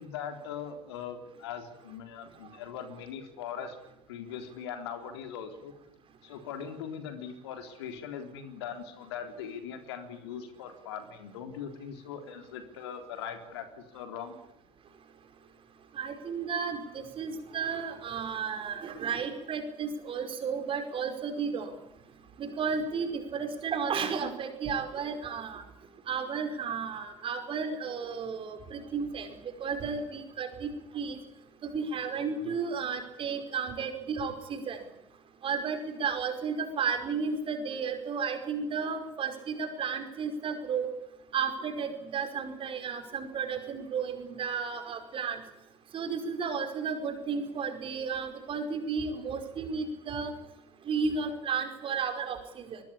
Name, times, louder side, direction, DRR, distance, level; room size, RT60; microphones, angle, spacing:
voice 1, 0.0-3.8 4.1-5.7 6.2-14.4 32.4-32.6, left 7 dB, 70° left, 7 dB, 3.9 m, -40 dB
voice 2, 16.0-21.7 22.4-25.6 26.1-29.3 29.6-31.2 31.6-34.8 35.4-40.9 41.3-45.4 45.9-50.3 50.9-52.8, right 5 dB, 40° right, 7 dB, 5.2 m, -33 dB
22.0 x 21.0 x 8.7 m, 0.87 s
figure-of-eight pair, 65°, 14 cm